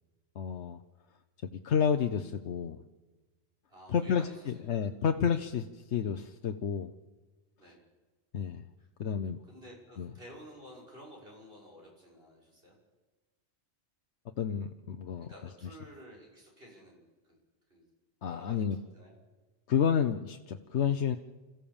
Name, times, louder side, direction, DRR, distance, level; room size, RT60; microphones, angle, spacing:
voice 1, 0.4-0.8 1.4-2.8 3.9-6.9 8.3-8.6 9.0-9.4 10.0-10.1 14.4-15.3 18.2-18.8 19.7-21.2, left 7 dB, 75° left, 6 dB, 1.1 m, -30 dB
voice 2, 3.7-4.8 7.6-7.8 8.8-8.9 9.4-12.8 15.2-17.4 17.7-17.8 18.2-19.2, equal, 55° right, -3 dB, 6.3 m, -52 dB
26.5 x 15.0 x 7.2 m, 1.2 s
omnidirectional pair, 1.2 m